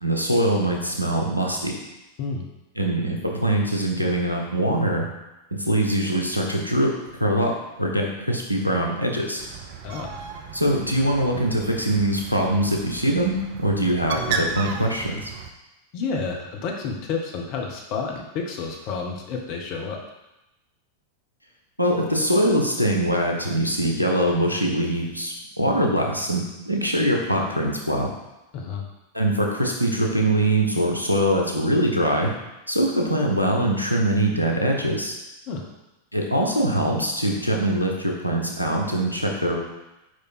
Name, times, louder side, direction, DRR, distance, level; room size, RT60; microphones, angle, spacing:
voice 1, 0.0-1.7 2.8-5.1 5.5-6.9 7.2-7.5 7.8-9.4 10.5-15.3 21.8-28.1 29.1-32.3 32.7-35.1 36.1-39.6, right 1 dB, 90° right, -1 dB, 0.9 m, -23 dB
Bird, 9.4-15.5, right 5 dB, 50° right, 0.6 m, -34 dB
voice 2, 9.8-10.2 15.9-20.0 28.5-28.8 35.5-35.6, left 4 dB, 40° left, 1 dB, 1.1 m, -30 dB
5.0 x 4.7 x 4.3 m, 0.97 s
figure-of-eight pair, 90°, 0 cm